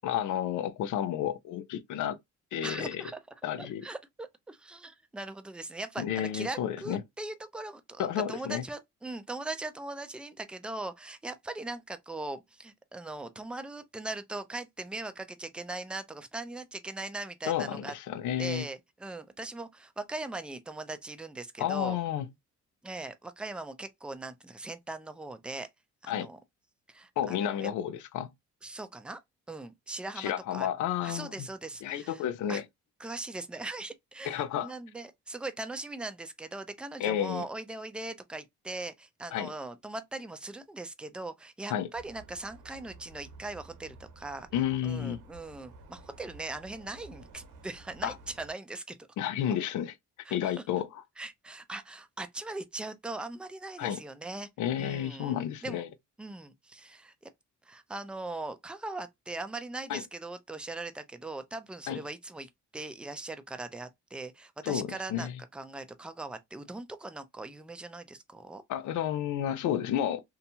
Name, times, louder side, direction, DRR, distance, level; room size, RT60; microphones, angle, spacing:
voice 1, 0.0-2.2 2.5-3.1 3.4-3.8 6.0-7.0 8.0-8.6 17.5-18.7 21.6-22.3 26.1-26.3 27.2-28.3 30.2-31.5 31.8-32.6 34.2-34.7 37.0-37.4 39.3-39.5 41.7-41.9 44.5-45.2 48.0-48.1 49.2-49.9 50.3-50.9 53.8-54.0 54.6-55.9 59.9-60.0 61.9-62.0 64.6-65.3 68.7-70.2, left 10 dB, 75° left, 0.5 m, -31 dB
voice 2, 2.6-3.2 3.6-17.9 18.4-22.0 22.8-25.7 26.0-26.4 26.9-27.7 28.6-29.2 29.5-30.7 31.0-32.2 32.5-32.6 33.0-44.5 44.8-49.0 50.2-50.5 51.2-54.5 54.8-55.8 56.2-57.1 57.6-68.6, right 2 dB, 5° right, 0.4 m, -40 dB
sound 1, 41.9-48.5, right 3 dB, 80° right, 1.0 m, -52 dB
2.8 x 2.3 x 2.6 m
cardioid pair, 90°, 30 cm